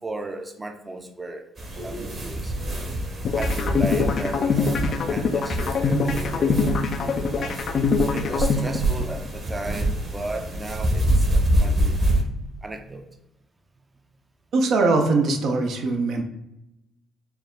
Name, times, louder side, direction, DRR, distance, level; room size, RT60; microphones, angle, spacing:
voice 1, 0.0-1.4 1.8-2.6 3.3-7.5 8.1-12.0 12.3-13.0, right 2 dB, 20° right, 5 dB, 0.6 m, -35 dB
sound 1, 1.6-12.2, right 1 dB, 45° right, 1.1 m, -26 dB
sound 2, 3.3-9.3, left 5 dB, 55° left, 0.4 m, -24 dB
voice 2, 14.5-16.2, right 3 dB, 65° right, 2 dB, 0.6 m, -21 dB
4.5 x 2.1 x 3.7 m, 0.88 s
hypercardioid pair, 55°, 0 cm